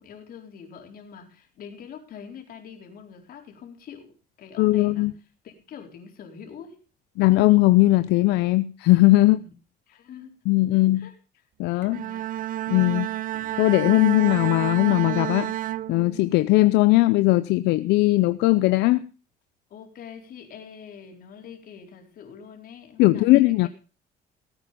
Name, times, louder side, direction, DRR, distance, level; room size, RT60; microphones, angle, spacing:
voice 1, 0.0-5.1 5.4-6.8 9.4-9.5 9.9-10.4 10.7-11.2 11.9-12.3 19.7-23.7, left 7 dB, 60° left, 4.3 m, -44 dB
voice 2, 4.6-5.1 7.2-9.4 10.5-11.1 11.6-12.0 12.7-13.1 13.6-15.5 15.9-19.0 23.0-23.7, left 19 dB, 90° left, 0.6 m, -19 dB
Bowed string instrument, 11.8-16.5, right 14 dB, 55° right, 0.6 m, -30 dB
18.5 x 9.0 x 5.3 m
cardioid pair, 110°, 17 cm